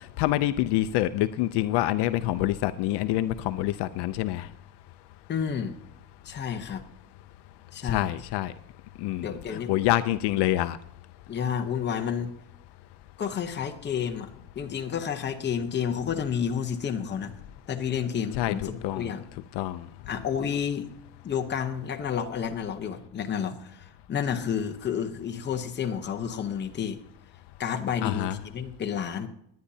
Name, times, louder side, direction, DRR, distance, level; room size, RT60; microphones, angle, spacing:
voice 1, 0.2-4.5 7.8-8.5 9.0-10.8 18.3-18.5 18.8-19.1 19.6-19.8 28.0-28.4, left 14 dB, 65° left, 11 dB, 0.6 m, -26 dB
voice 2, 5.3-5.8 6.2-6.8 7.7-8.1 9.2-9.7 11.3-12.3 13.2-14.3 14.6-17.3 17.7-19.2 20.1-20.9 21.2-27.0 27.6-29.3, left 7 dB, 25° left, 6 dB, 0.8 m, -30 dB
20.0 x 10.0 x 2.8 m, 0.74 s
cardioid pair, 175°, 45 cm